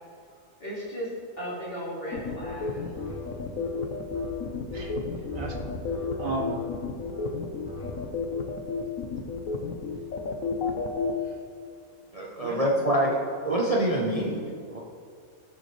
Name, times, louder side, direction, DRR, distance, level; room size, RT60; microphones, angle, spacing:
voice 1, 0.6-1.1 1.4-2.9, equal, 45° left, -8 dB, 3.4 m, -35 dB
sound 1, 2.1-11.1, left 5 dB, 85° left, 1.4 m, -31 dB
sound 2, 2.6-8.0, right 1 dB, 10° left, 2.7 m, -40 dB
voice 2, 4.7-5.8 6.2-6.6 11.2-11.4 12.4-13.2, right 2 dB, 85° right, -2 dB, 1.9 m, -36 dB
voice 3, 12.1-13.1 13.4-14.8, right 1 dB, 30° right, -3 dB, 0.9 m, -26 dB
18.0 x 7.0 x 3.3 m, 2.2 s
omnidirectional pair, 1.4 m